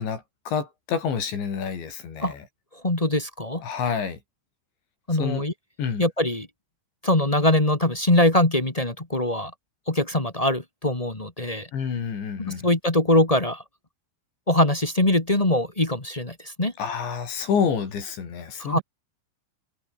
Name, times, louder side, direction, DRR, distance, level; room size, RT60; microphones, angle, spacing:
voice 1, 0.0-2.5 3.6-4.2 5.2-5.4 5.8-6.0 11.7-12.7 16.8-18.8, left 6 dB, 80° left, 7.1 m, -28 dB
voice 2, 2.7-3.6 5.1-5.5 6.0-6.5 7.0-9.5 9.9-11.7 12.4-13.6 14.5-16.7 18.6-18.8, left 1 dB, 25° left, 0.7 m, -22 dB
omnidirectional pair, 5.1 m